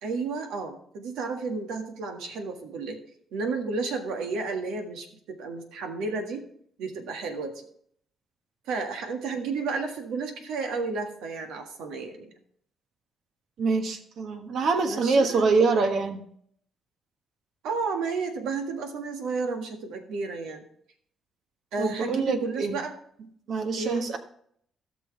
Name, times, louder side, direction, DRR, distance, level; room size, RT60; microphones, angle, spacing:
voice 1, 0.0-3.0 3.3-6.4 6.8-7.6 8.7-12.3 14.9-15.5 17.6-20.6 21.7-22.9 23.8-24.1, right 4 dB, 90° right, 5 dB, 1.7 m, -32 dB
voice 2, 13.6-16.2 21.8-22.8 23.5-24.2, right 4 dB, 65° right, 6 dB, 1.4 m, -25 dB
16.5 x 6.2 x 3.3 m, 0.64 s
cardioid pair, 90°, 0 cm